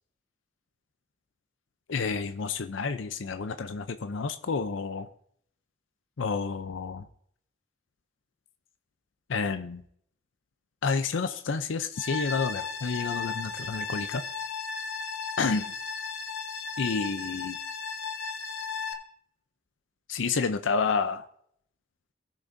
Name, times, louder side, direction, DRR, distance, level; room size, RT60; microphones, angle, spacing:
voice 1, 1.9-5.1 6.2-7.1 9.3-9.8 10.8-14.2 15.4-15.7 16.8-17.6 20.1-21.2, left 4 dB, 85° left, 9 dB, 0.6 m, -30 dB
sound 1, 12.0-18.9, left 5 dB, 60° left, 1.0 m, -35 dB
19.0 x 6.3 x 2.6 m, 0.67 s
head